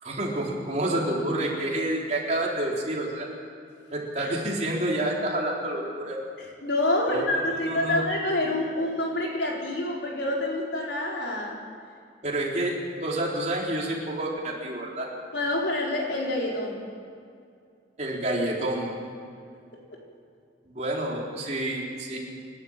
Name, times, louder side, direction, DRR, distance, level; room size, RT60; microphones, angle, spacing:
voice 1, 0.0-3.3 3.9-6.2 7.1-8.0 12.2-15.1 18.0-19.0 20.7-22.2, right 1 dB, 40° right, -3 dB, 4.1 m, -29 dB
voice 2, 6.4-11.5 15.3-16.8 19.9-20.0, left 1 dB, 75° left, -2 dB, 4.6 m, -27 dB
26.5 x 12.0 x 8.9 m, 2.3 s
head